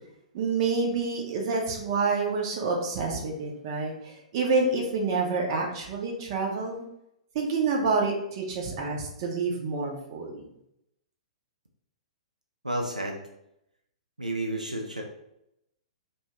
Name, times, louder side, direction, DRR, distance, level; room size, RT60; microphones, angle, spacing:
voice 1, 0.3-6.8 7.3-10.4, right 4 dB, 40° right, 0 dB, 0.6 m, -28 dB
voice 2, 12.6-13.2 14.2-15.0, right 1 dB, 85° right, 1 dB, 0.4 m, -31 dB
2.7 x 2.2 x 2.9 m, 0.81 s
figure-of-eight pair, 110°, 4 cm